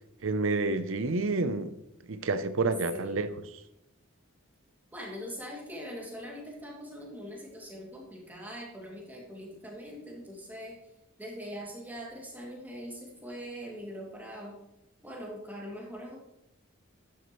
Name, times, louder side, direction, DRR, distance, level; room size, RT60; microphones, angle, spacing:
voice 1, 0.2-1.7 2.1-3.6, right 3 dB, 75° right, 0.7 m, -29 dB
voice 2, 2.9-3.3 4.9-10.8 11.2-14.6 15.0-16.2, equal, 10° right, 2.5 m, -42 dB
12.0 x 10.5 x 3.1 m
head